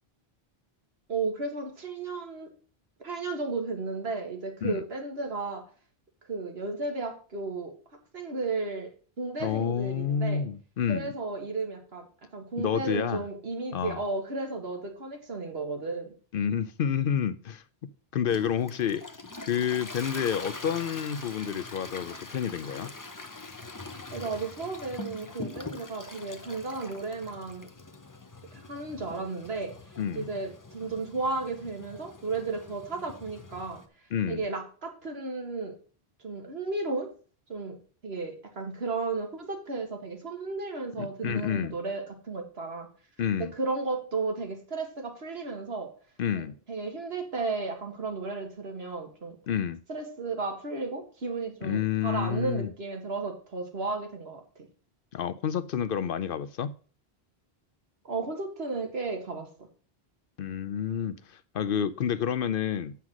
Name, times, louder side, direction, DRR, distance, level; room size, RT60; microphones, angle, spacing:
voice 1, 1.1-2.5 3.0-5.6 6.3-7.7 8.1-10.4 10.9-12.1 12.3-16.1 24.1-27.7 28.5-33.8 34.3-35.8 36.2-37.1 37.5-37.8 38.0-42.9 43.4-45.9 46.3-49.4 49.9-54.4 58.0-59.5, right 3 dB, 75° right, 3 dB, 1.9 m, -34 dB
voice 2, 9.4-11.1 12.6-13.2 13.7-14.0 16.3-17.6 18.1-19.0 19.4-22.9 30.0-30.2 34.1-34.4 41.0-41.7 43.2-43.5 46.2-46.5 49.5-49.8 51.6-52.7 55.1-56.7 60.4-63.0, left 8 dB, 65° left, 14 dB, 0.7 m, -29 dB
Toilet flush, 18.3-33.9, left 2 dB, 20° left, 0.8 m, -43 dB
8.0 x 5.7 x 6.0 m, 0.39 s
omnidirectional pair, 1.1 m